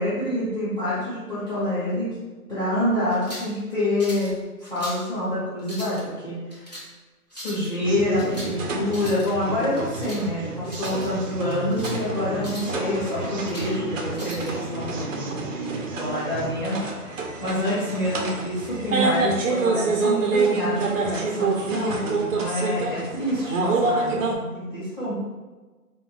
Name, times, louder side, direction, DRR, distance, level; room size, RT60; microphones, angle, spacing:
voice 1, 0.0-2.1 2.5-4.3 4.6-6.7 7.3-25.1, left 1 dB, 10° left, -14 dB, 1.1 m, -27 dB
sound 1, 3.1-3.5 4.0-4.3 4.6-5.1 5.6-6.0 6.5-6.9 7.3-7.7 8.2-8.6 8.8-9.3 9.7-10.2 10.6-11.1 11.5-12.0 12.4-12.8 13.2-13.7 14.2-14.5, equal, 30° left, 0.4 m, -39 dB
sound 2, 7.8-24.4, right 3 dB, 55° right, 0.5 m, -28 dB
sound 3, 11.8-16.0, equal, 50° left, 1.1 m, -41 dB
2.3 x 2.2 x 3.7 m, 1.2 s
hypercardioid pair, 150°, 46 cm